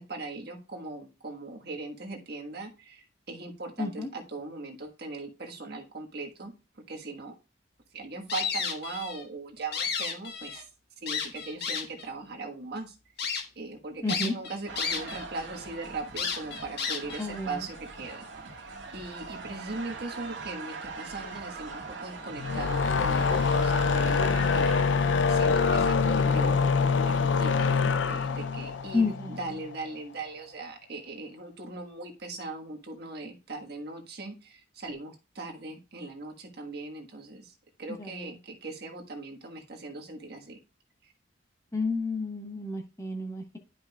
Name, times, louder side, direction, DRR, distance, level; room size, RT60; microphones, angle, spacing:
voice 1, 0.0-7.3 7.9-10.6 11.0-13.3 13.5-37.5 37.8-40.6, right 3 dB, 60° right, 2 dB, 1.4 m, -40 dB
voice 2, 3.8-4.1 14.0-14.3 17.2-17.5 28.9-29.4 38.0-38.3 41.7-43.6, left 3 dB, 15° left, 4 dB, 1.2 m, -30 dB
sound 1, 8.3-9.2 9.6-10.6 11.1-12.0 12.6-12.7 13.2-13.4 14.1-15.2 15.5-15.6 16.2-17.3, left 6 dB, 60° left, 1.3 m, -32 dB
sound 2, 14.7-24.8, right 4 dB, 90° right, 1.7 m, -41 dB
sound 3, 22.4-29.7, left 5 dB, 80° left, 0.5 m, -25 dB
11.5 x 5.4 x 2.3 m, 0.32 s
head